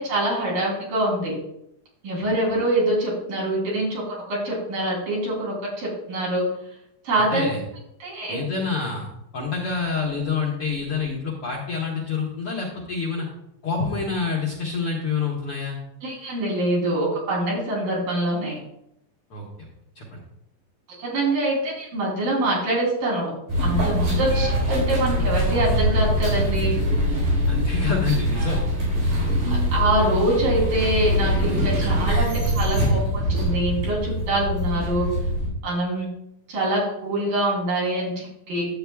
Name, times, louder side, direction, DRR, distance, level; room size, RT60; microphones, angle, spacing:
voice 1, 0.0-1.3 2.0-6.4 7.0-7.5 8.0-8.4 16.0-18.6 21.0-23.3 23.6-26.8 29.7-35.1 35.6-36.1 36.5-38.7, right 1 dB, 70° right, -4 dB, 5.0 m, -24 dB
voice 2, 7.3-7.6 8.3-9.1 9.3-13.3 13.6-15.8 19.3-19.7 19.9-20.2 27.5-28.6, left 5 dB, 65° left, -3 dB, 1.4 m, -27 dB
sound 1, 23.5-35.5, equal, 90° right, 5.6 m, -23 dB
11.5 x 8.3 x 2.3 m, 0.80 s
omnidirectional pair, 4.1 m